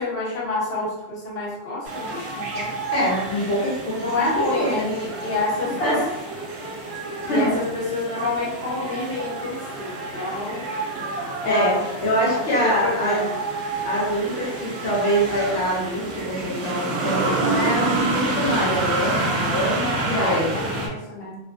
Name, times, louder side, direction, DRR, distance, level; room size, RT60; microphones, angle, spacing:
voice 1, 0.0-2.8 4.0-6.0 7.3-10.7 11.4-11.8 12.2-13.4 20.2-21.4, left 2 dB, 55° left, -7 dB, 1.2 m, -28 dB
sound 1, 1.8-20.9, right 2 dB, 65° right, 0.8 m, -28 dB
voice 2, 2.9-4.0 4.4-4.9 5.2-5.3 5.8-6.1 7.3-7.6 11.4-11.7 12.0-13.2 13.8-20.6, equal, 80° left, -6 dB, 1.1 m, -24 dB
2.4 x 2.1 x 2.5 m, 0.93 s
omnidirectional pair, 1.2 m